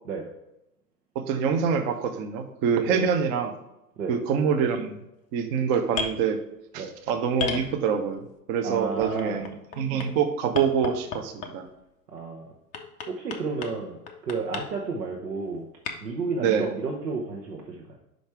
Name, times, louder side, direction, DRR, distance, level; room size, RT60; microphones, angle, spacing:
voice 1, 1.1-3.5 4.1-5.0 5.3-6.4 6.7-9.5 9.8-11.7 16.4-16.7, right 7 dB, 35° right, 7 dB, 0.7 m, -25 dB
sound 1, 5.9-6.2 7.4-8.2 9.2-10.1 10.6-11.7 12.7-13.8 14.1-14.7 15.9-16.0, left 6 dB, 15° left, 0.5 m, -32 dB
voice 2, 8.6-9.4 12.1-12.5 13.1-15.6 16.0-17.8, right 4 dB, 80° right, 0 dB, 1.1 m, -32 dB
5.3 x 4.9 x 4.5 m, 0.88 s
hypercardioid pair, 110°, 48 cm